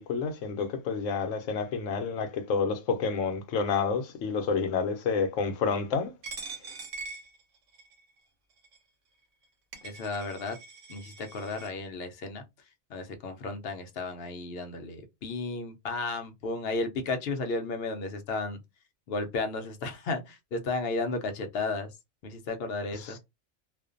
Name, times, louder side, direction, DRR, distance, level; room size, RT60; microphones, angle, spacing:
voice 1, 0.0-6.1 22.9-23.2, left 5 dB, 85° left, 1.0 m, -29 dB
Coin (dropping), 6.2-8.0 8.6-8.8 9.4-9.5 9.7-11.7, right 4 dB, 85° right, 1.0 m, -43 dB
voice 2, 9.8-10.6 10.9-12.4 12.9-18.6 19.1-21.9 22.2-23.2, left 3 dB, 60° left, 0.8 m, -33 dB
2.4 x 2.2 x 2.4 m
omnidirectional pair, 1.3 m